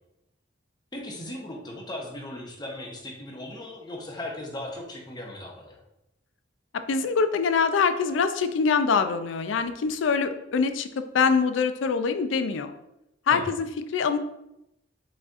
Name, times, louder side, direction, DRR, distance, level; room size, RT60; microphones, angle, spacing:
voice 1, 0.9-5.8 13.3-13.5, left 1 dB, 20° left, 0 dB, 0.8 m, -37 dB
voice 2, 6.9-10.9 11.1-12.7 13.3-14.2, left 5 dB, 75° left, 9 dB, 0.4 m, -24 dB
4.8 x 4.1 x 2.5 m, 0.85 s
head